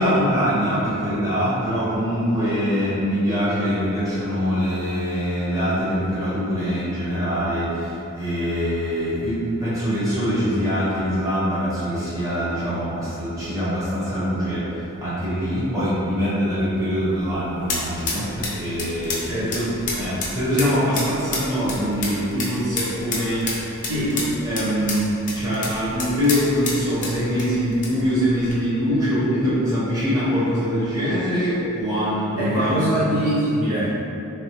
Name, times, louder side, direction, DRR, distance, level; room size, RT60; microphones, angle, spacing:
voice 1, 0.0-23.7 24.1-32.9, equal, 15° right, -12 dB, 1.0 m, -23 dB
sound 1, 16.9-28.6, left 3 dB, 35° left, 0.5 m, -31 dB
voice 2, 23.8-24.2 32.4-33.9, right 1 dB, 75° right, -12 dB, 0.8 m, -23 dB
3.3 x 2.1 x 2.9 m, 2.8 s
head